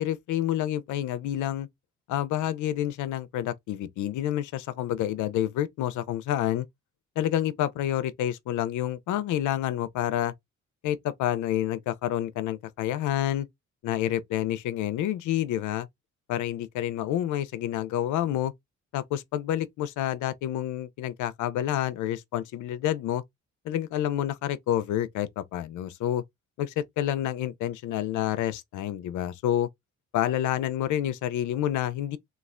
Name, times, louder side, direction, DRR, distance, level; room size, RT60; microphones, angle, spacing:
voice 1, 0.0-1.7 2.1-6.7 7.2-10.3 10.8-13.5 13.8-15.9 16.3-18.5 18.9-23.2 23.6-26.2 26.6-29.7 30.1-32.2, left 12 dB, 80° left, 0.5 m, -28 dB
3.1 x 2.4 x 2.4 m
cardioid pair, 90°, 30 cm